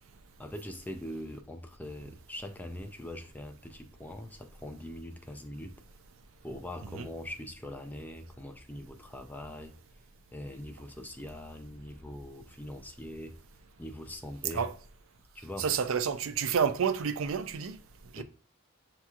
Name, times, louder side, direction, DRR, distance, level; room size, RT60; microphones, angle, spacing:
voice 1, 0.4-5.7 6.4-9.7 10.3-13.3 13.8-14.7 15.3-15.7 18.2-18.3, left 1 dB, 10° left, 0.4 m, -42 dB
voice 2, 15.6-17.8 18.1-18.2, right 7 dB, 75° right, 0.4 m, -29 dB
7.1 x 2.9 x 2.3 m
head